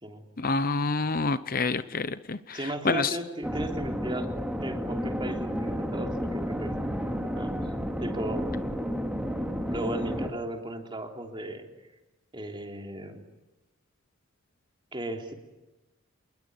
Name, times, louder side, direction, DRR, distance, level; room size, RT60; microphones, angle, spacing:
voice 1, 0.4-2.6 2.8-3.1, left 3 dB, 40° left, 13 dB, 0.8 m, -27 dB
voice 2, 2.5-4.3 4.6-7.7 8.0-8.5 9.7-11.7 12.3-13.2 14.9-15.3, right 1 dB, 20° right, 3 dB, 3.4 m, -36 dB
sound 1, 3.4-10.3, equal, 5° right, 2.3 m, -31 dB
27.5 x 21.0 x 9.7 m, 1.1 s
head